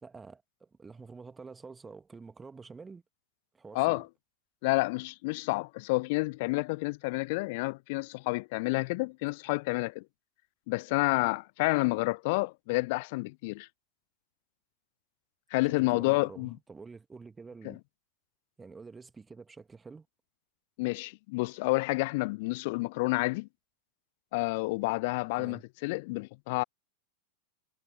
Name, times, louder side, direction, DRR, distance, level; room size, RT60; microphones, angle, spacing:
voice 1, 0.0-3.0 3.5-4.1 15.8-17.8 18.6-20.1 25.4-25.6, right 4 dB, 15° right, 2.2 m, -48 dB
voice 2, 3.7-4.1 4.6-10.1 10.7-13.7 15.5-16.6 17.6-17.8 20.8-23.5 24.3-26.6, left 25 dB, 50° left, 0.3 m, -29 dB
figure-of-eight pair, 90°, 0 cm